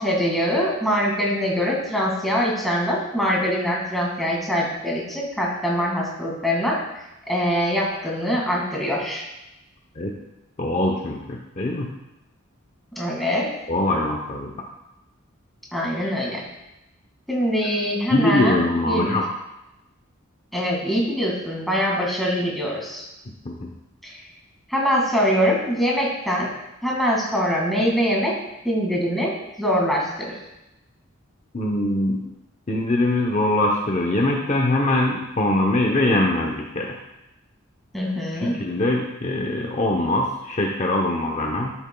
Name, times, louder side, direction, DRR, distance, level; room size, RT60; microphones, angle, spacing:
voice 1, 0.0-9.2 13.0-13.5 15.7-16.4 17.3-19.2 20.5-23.1 24.0-24.2 24.7-26.5 26.8-28.3 28.6-29.3 29.6-30.3 37.9-38.6, equal, ahead, -3 dB, 1.9 m, -23 dB
voice 2, 10.6-11.9 13.7-14.5 18.1-19.2 23.5-23.7 31.5-32.2 32.7-36.9 38.4-41.7, left 1 dB, 35° left, 0 dB, 0.7 m, -22 dB
12.0 x 7.0 x 2.2 m, 0.93 s
head